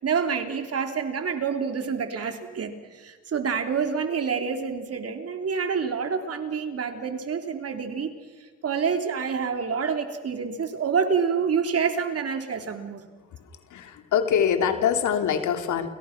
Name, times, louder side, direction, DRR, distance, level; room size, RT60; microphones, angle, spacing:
voice 1, 0.0-8.1 8.6-13.0, right 6 dB, 50° right, 6 dB, 3.6 m, -27 dB
voice 2, 13.7-15.9, left 8 dB, 75° left, 6 dB, 3.1 m, -24 dB
29.5 x 29.0 x 6.1 m, 1.5 s
cardioid pair, 90°, 30 cm